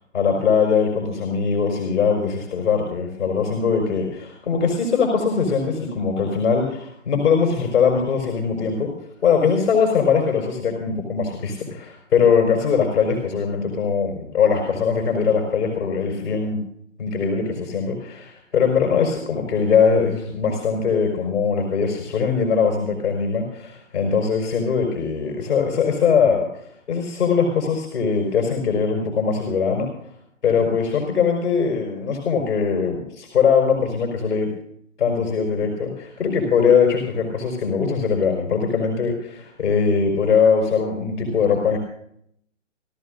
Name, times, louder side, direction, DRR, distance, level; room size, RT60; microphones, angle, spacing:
voice 1, 0.1-8.9 9.2-16.6 17.0-29.9 30.4-34.5 35.0-41.8, left 6 dB, 65° left, 2 dB, 4.8 m, -21 dB
29.5 x 13.5 x 2.6 m, 0.68 s
figure-of-eight pair, 140°, 38 cm